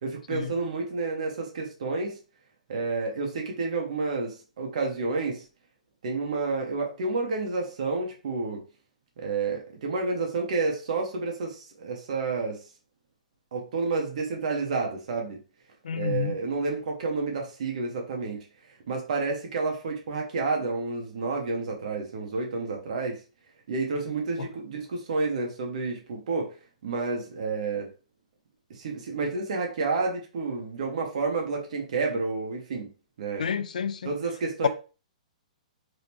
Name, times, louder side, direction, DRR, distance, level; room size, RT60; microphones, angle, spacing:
voice 1, 0.0-2.1 2.7-5.4 6.0-8.6 9.2-12.6 13.5-15.4 16.0-18.4 18.9-23.2 23.7-26.5 26.8-27.9 28.7-32.9 33.2-33.4 34.0-34.7, right 3 dB, 65° right, 1.5 m, -30 dB
voice 2, 15.8-16.4 24.4-24.5 33.4-34.1, left 7 dB, 80° left, 0.5 m, -30 dB
3.8 x 3.6 x 3.0 m
hypercardioid pair, 145°, 4 cm